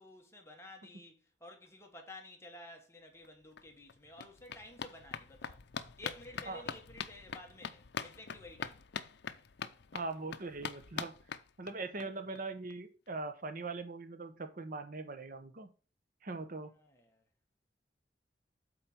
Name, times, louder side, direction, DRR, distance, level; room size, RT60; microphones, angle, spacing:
voice 1, 0.0-5.6 6.0-8.8 16.7-17.2, left 1 dB, 15° left, 1.7 m, -52 dB
sound 1, 3.2-3.3 3.6-12.0 12.4-12.5 12.7-12.8 13.1-13.2, left 6 dB, 70° left, 0.6 m, -44 dB
voice 2, 9.9-11.1 11.6-15.7 16.2-16.7, right 3 dB, 50° right, 0.9 m, -41 dB
7.9 x 4.4 x 6.0 m
head